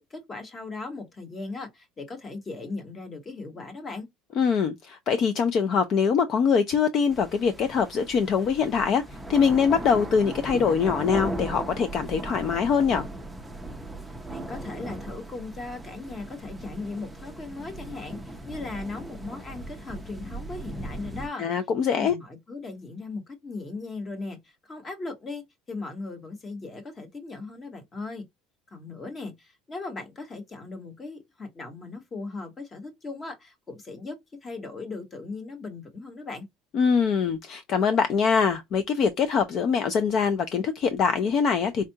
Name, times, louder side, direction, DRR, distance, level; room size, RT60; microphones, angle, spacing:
voice 1, 0.0-4.1 14.3-21.5 21.9-25.4 25.7-28.2 28.7-36.5, left 3 dB, 25° left, 1.2 m, -38 dB
voice 2, 4.4-13.1 21.4-22.1 36.7-41.9, left 6 dB, 40° left, 0.5 m, -23 dB
sound 1, 7.1-21.3, right 1 dB, 5° right, 0.6 m, -38 dB
4.5 x 2.4 x 2.7 m
cardioid pair, 150°, 0 cm